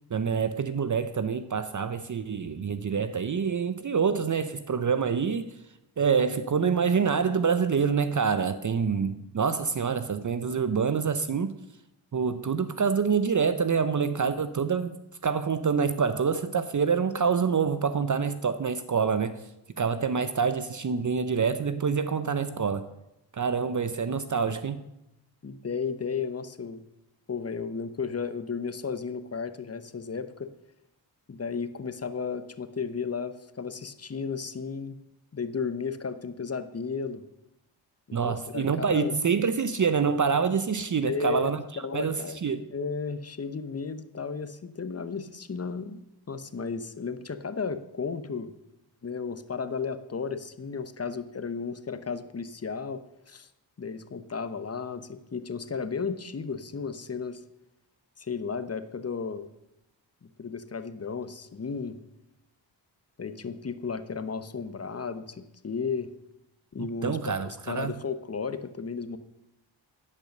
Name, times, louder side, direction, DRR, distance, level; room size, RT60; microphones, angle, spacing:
voice 1, 0.1-5.5 6.0-11.5 12.1-15.0 15.2-19.4 19.8-22.8 23.3-24.8 38.1-41.6 41.9-42.6 66.8-67.9, right 6 dB, 40° right, 0.7 m, -26 dB
voice 2, 25.4-26.8 27.3-30.5 31.3-35.0 35.3-37.2 38.1-39.2 41.0-42.4 42.7-48.5 49.0-53.5 53.8-57.4 58.2-59.5 60.2-62.0 63.2-66.1 66.7-69.2, left 5 dB, 30° left, 0.9 m, -34 dB
10.5 x 5.5 x 6.4 m
cardioid pair, 45°, 47 cm